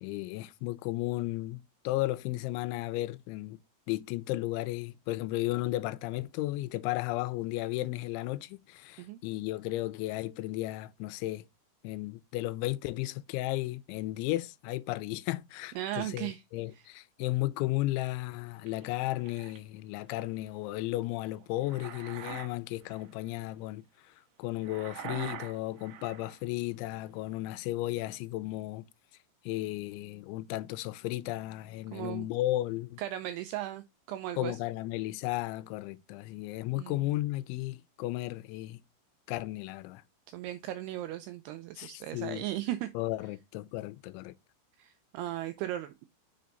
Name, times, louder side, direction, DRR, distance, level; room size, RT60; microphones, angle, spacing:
voice 1, 0.0-3.6 3.9-11.5 11.8-23.8 24.4-28.8 29.5-33.0 34.4-38.8 39.3-40.0 41.8-42.4 43.0-44.3, left 17 dB, 85° left, 2.9 m, -34 dB
voice 2, 15.8-16.4 16.7-16.9 31.9-32.3 33.0-34.6 36.8-37.1 40.3-42.9 44.8-46.1, right 13 dB, 85° right, 2.3 m, -37 dB
sound 1, 18.7-19.6 21.4-22.5 22.8-23.1 24.6-26.4, right 9 dB, 70° right, 2.7 m, -43 dB
6.8 x 5.2 x 3.9 m
omnidirectional pair, 5.3 m